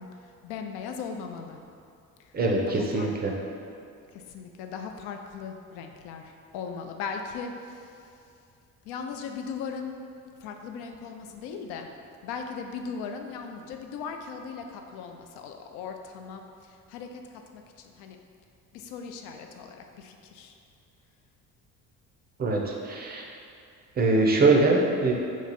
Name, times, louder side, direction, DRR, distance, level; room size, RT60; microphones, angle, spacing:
voice 1, 0.0-1.6 2.2-2.3 2.7-3.2 4.1-8.1 8.8-10.0 10.4-11.9 12.2-18.2 18.7-20.6, left 5 dB, 55° left, 4 dB, 0.5 m, -38 dB
voice 2, 2.3-3.3 22.4-23.2 24.0-25.1, right 3 dB, 20° right, -1 dB, 0.5 m, -23 dB
3.0 x 2.4 x 4.0 m, 2.5 s
hypercardioid pair, 50°, 48 cm